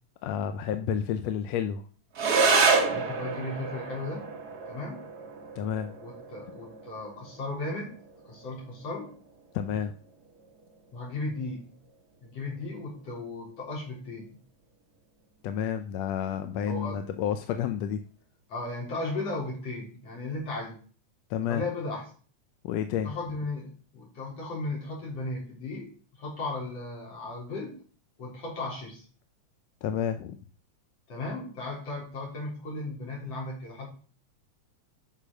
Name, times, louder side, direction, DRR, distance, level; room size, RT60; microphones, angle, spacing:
voice 1, 0.2-1.8 5.6-5.9 9.5-9.9 15.4-18.0 21.3-21.6 22.6-23.1 29.8-30.4, left 9 dB, 75° left, 8 dB, 1.8 m, -30 dB
sound 1, 2.1-11.1, right 4 dB, 45° right, 1.4 m, -30 dB
voice 2, 2.9-4.3 4.7-5.0 6.0-8.0 8.2-9.1 10.9-11.7 12.2-14.4 16.7-17.1 18.5-20.8 21.5-22.1 23.0-25.9 26.2-27.8 28.2-29.1 31.1-33.9, left 2 dB, 55° left, -2 dB, 5.2 m, -36 dB
10.0 x 6.1 x 6.3 m, 0.40 s
omnidirectional pair, 3.3 m